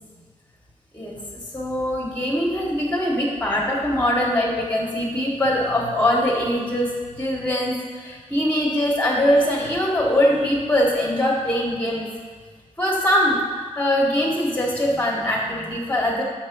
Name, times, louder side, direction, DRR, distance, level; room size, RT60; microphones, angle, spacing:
voice 1, 1.5-6.9 7.2-12.1 12.8-16.2, equal, 10° left, -2 dB, 1.4 m, -22 dB
6.5 x 4.4 x 6.0 m, 1.5 s
wide cardioid pair, 80°, 13 cm